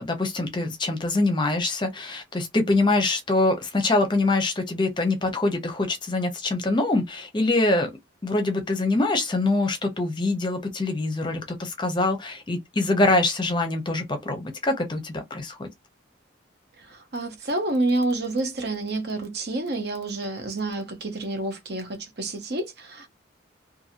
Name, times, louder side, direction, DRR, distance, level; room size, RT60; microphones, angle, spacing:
voice 1, 0.0-7.9 8.2-15.7, left 2 dB, 25° left, 0.6 m, -24 dB
voice 2, 16.8-23.1, right 2 dB, 55° right, 0.8 m, -28 dB
2.7 x 2.6 x 2.8 m
head